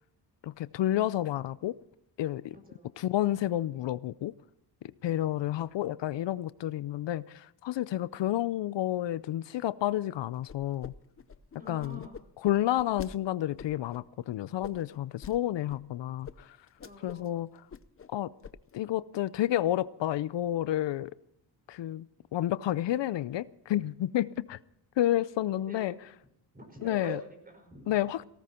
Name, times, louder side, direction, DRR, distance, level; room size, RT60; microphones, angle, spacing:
voice 1, 0.4-1.8 2.2-2.5 3.0-4.3 5.0-10.9 11.7-12.0 12.4-16.6 17.0-17.5 18.1-18.3 18.7-21.1 21.7-22.1 22.3-24.6 25.0-25.9 26.8-27.2 27.9-28.2, left 13 dB, 80° left, 0.6 m, -30 dB
voice 2, 2.5-2.9 11.6-12.2 16.8-17.5 25.6-26.2 26.5-28.0, right 1 dB, 20° right, 5.5 m, -46 dB
sound 1, 10.5-10.9 11.2-13.1 13.6-14.0 14.6-15.4 15.7-15.8 16.2-16.4 16.7-17.3 17.6-18.1 18.4-18.8, left 6 dB, 30° left, 0.7 m, -46 dB
18.5 x 18.0 x 4.4 m
wide cardioid pair, 110°, 43 cm